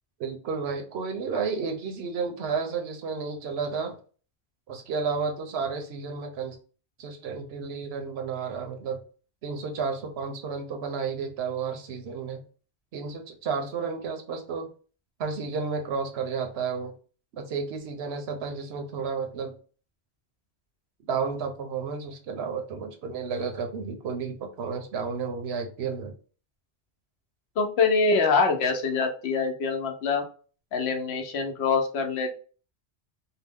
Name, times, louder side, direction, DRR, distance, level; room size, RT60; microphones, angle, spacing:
voice 1, 0.2-4.0 4.7-6.6 7.0-9.0 9.4-12.4 12.9-14.7 15.2-16.9 17.3-19.6 21.1-26.1, right 5 dB, 75° right, 4 dB, 0.9 m, -32 dB
voice 2, 27.6-30.3 30.7-32.3, left 4 dB, 75° left, 4 dB, 0.9 m, -24 dB
2.7 x 2.0 x 3.5 m, 0.39 s
omnidirectional pair, 1.1 m